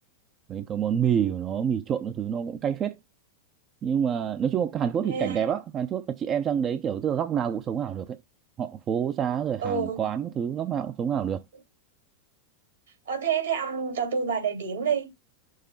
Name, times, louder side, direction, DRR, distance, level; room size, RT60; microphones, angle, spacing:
voice 1, 0.5-2.9 3.8-8.2 8.6-11.4, right 8 dB, 30° right, 0.6 m, -27 dB
voice 2, 5.0-5.5 9.6-10.0 13.0-15.1, right 6 dB, 70° right, 3.2 m, -28 dB
6.4 x 2.9 x 5.5 m
figure-of-eight pair, 90°, 0 cm